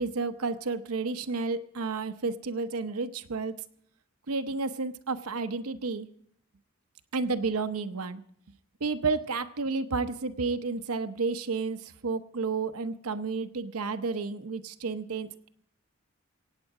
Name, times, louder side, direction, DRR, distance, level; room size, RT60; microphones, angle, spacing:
voice 1, 0.0-3.5 4.3-6.1 7.1-8.2 8.8-15.5, right 4 dB, 85° right, 10 dB, 0.8 m, -31 dB
24.0 x 9.0 x 4.8 m, 0.66 s
head